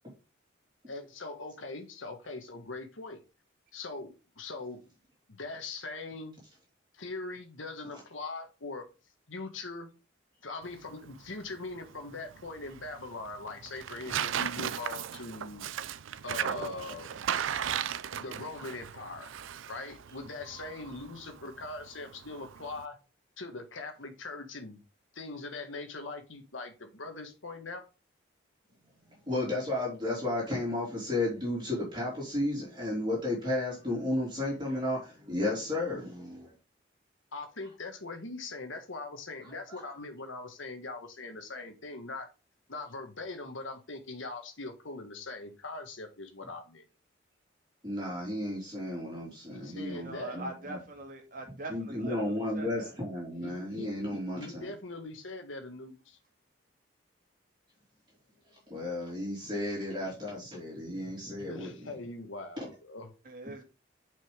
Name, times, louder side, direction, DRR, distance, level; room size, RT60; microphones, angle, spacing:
voice 1, 0.9-3.2 3.7-4.8 5.3-6.4 6.9-8.9 9.3-9.9 10.4-15.7 16.2-17.1 18.1-19.3 19.7-23.0 23.4-24.8 25.1-27.8 37.3-42.3 42.7-46.8 49.5-50.4 53.4-56.2 61.4-63.1, left 3 dB, 85° left, 1.6 m, -41 dB
Tearing, 10.6-22.9, right 9 dB, 85° right, 0.5 m, -37 dB
voice 2, 29.3-36.5 39.7-39.9 47.8-50.8 51.7-54.7 58.7-61.9 62.6-62.7, left 1 dB, 25° right, 3.4 m, -33 dB
voice 3, 50.0-52.9 63.2-63.6, right 2 dB, 45° right, 2.2 m, -42 dB
6.6 x 5.4 x 5.2 m
head